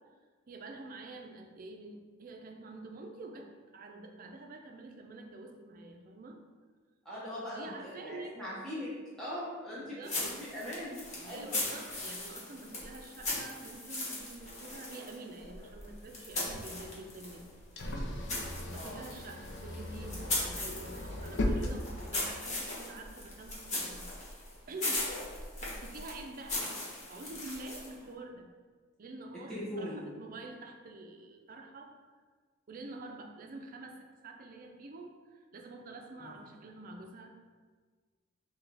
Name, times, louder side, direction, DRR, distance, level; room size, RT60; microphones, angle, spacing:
voice 1, 0.5-6.4 7.5-8.4 9.8-10.2 11.2-17.4 18.7-24.1 24.7-25.1 25.6-26.8 27.1-28.5 29.0-32.0 32.7-37.5, right 2 dB, 45° right, 3 dB, 0.5 m, -47 dB
voice 2, 7.0-8.9 9.2-11.6 18.7-19.0 29.5-30.0 36.2-36.3, left 1 dB, 5° left, -10 dB, 0.8 m, -41 dB
sound 1, 10.0-17.4 17.8-28.0, left 2 dB, 35° left, 1.2 m, -39 dB
sound 2, 16.3-22.5, left 1 dB, 60° left, 0.6 m, -38 dB
6.1 x 2.3 x 3.3 m, 1.5 s
head